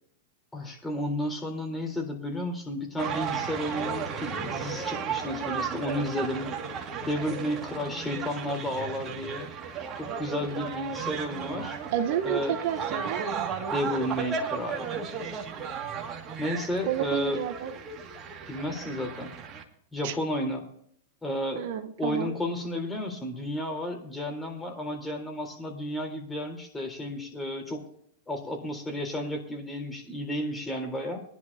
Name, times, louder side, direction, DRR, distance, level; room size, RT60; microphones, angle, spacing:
voice 1, 0.5-6.5 7.1-9.5 9.9-11.8 12.2-12.6 13.7-14.9 16.4-17.4 18.5-19.3 19.9-20.7 21.2-21.7 22.0-27.8 28.3-31.2, left 1 dB, 10° left, 3 dB, 3.8 m, -32 dB
sound 1, 3.0-19.6, right 6 dB, 30° right, 2.2 m, -35 dB
voice 2, 11.9-13.3 16.9-17.7 20.0-20.1 21.5-22.3, right 10 dB, 60° right, 7 dB, 1.0 m, -30 dB
22.5 x 11.0 x 2.8 m, 0.66 s
hypercardioid pair, 110°, 0 cm